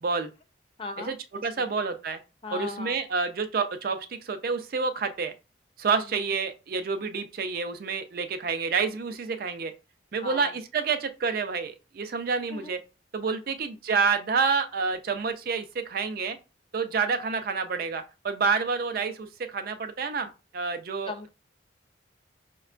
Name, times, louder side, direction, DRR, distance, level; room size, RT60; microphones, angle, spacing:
voice 1, 0.8-1.2 1.6-1.7 2.4-3.0 6.0-6.2 10.2-10.5 12.5-12.7 13.5-13.6 21.0-21.3, left 3 dB, 30° left, 0.4 m, -38 dB
voice 2, 1.4-2.2 2.5-5.3 5.8-9.7 10.1-12.8 13.1-16.4 16.7-21.3, right 5 dB, 50° right, 0.4 m, -28 dB
5.0 x 2.2 x 2.4 m
head